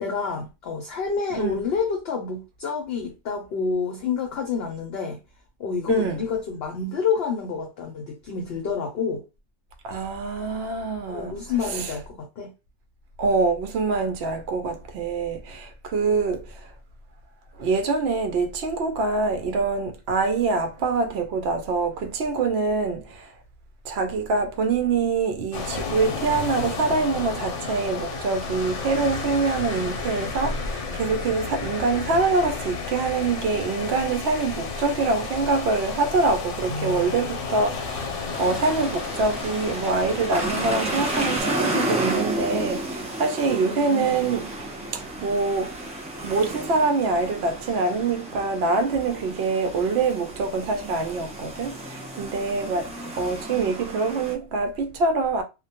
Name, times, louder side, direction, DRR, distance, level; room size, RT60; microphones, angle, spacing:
voice 1, 0.0-5.2 5.6-9.2 11.1-12.5 43.6-44.2, left 5 dB, 65° left, 0.7 m, -28 dB
voice 2, 5.9-6.2 9.8-11.9 13.2-16.7 17.6-23.3 23.8-45.8 46.2-55.4, right 3 dB, 65° right, 0.8 m, -25 dB
sound 1, 25.5-41.4, left 4 dB, 85° left, 1.0 m, -32 dB
sound 2, 38.3-54.3, right 1 dB, 10° right, 0.4 m, -32 dB
2.2 x 2.1 x 2.8 m
omnidirectional pair, 1.2 m